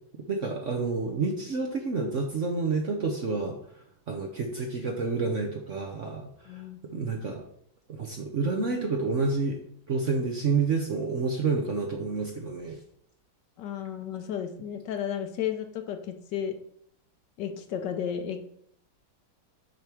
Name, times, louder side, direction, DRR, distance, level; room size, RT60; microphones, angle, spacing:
voice 1, 0.3-3.6 4.1-7.4 7.9-9.6 9.9-12.8, right 4 dB, 55° right, 2 dB, 0.9 m, -29 dB
voice 2, 6.5-6.8 13.6-16.5 17.4-18.4, left 9 dB, 70° left, 7 dB, 1.3 m, -33 dB
7.5 x 3.6 x 6.0 m, 0.67 s
omnidirectional pair, 2.1 m